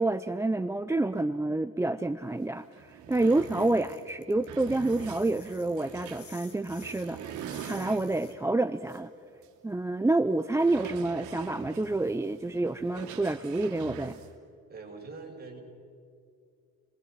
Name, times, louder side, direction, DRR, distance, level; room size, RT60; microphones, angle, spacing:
voice 1, 0.0-9.1 9.6-14.2, right 2 dB, 10° right, 11 dB, 0.6 m, -28 dB
sound 1, 2.3-2.4 2.7-8.4 8.9-9.0 9.4-9.5 10.5-14.3, right 8 dB, 90° right, 2.6 m, -44 dB
sound 2, 3.1-8.3, left 6 dB, 50° left, 4.0 m, -53 dB
voice 2, 14.7-15.6, right 4 dB, 30° right, 0 dB, 6.4 m, -43 dB
29.5 x 21.0 x 5.8 m, 2.5 s
cardioid pair, 100°, 29 cm